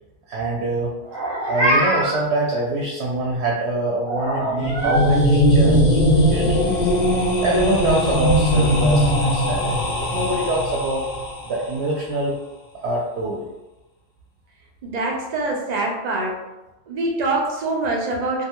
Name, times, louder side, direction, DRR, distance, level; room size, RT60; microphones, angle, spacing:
voice 1, 0.3-0.9 1.5-11.0 11.4-12.3 12.8-13.4, right 2 dB, 65° right, -3 dB, 0.8 m, -25 dB
Meow, 1.1-2.2 4.1-5.1, right 1 dB, 25° right, 0.7 m, -22 dB
sound 1, 4.5-11.5, equal, 75° left, 0.4 m, -19 dB
voice 2, 14.8-16.4 16.9-18.4, right 2 dB, 90° right, -1 dB, 0.3 m, -24 dB
2.7 x 2.2 x 2.8 m, 1.0 s
omnidirectional pair, 1.3 m